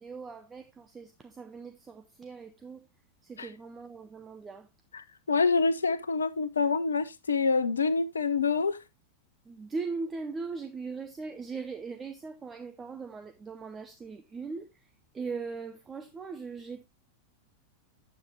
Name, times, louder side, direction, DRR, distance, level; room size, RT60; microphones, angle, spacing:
voice 1, 0.0-2.8 3.3-4.7 9.5-14.7 15.1-16.8, right 4 dB, 15° right, 0.8 m, -39 dB
voice 2, 4.9-8.8, left 4 dB, 70° left, 0.7 m, -27 dB
9.4 x 7.8 x 2.8 m
figure-of-eight pair, 90°, 0 cm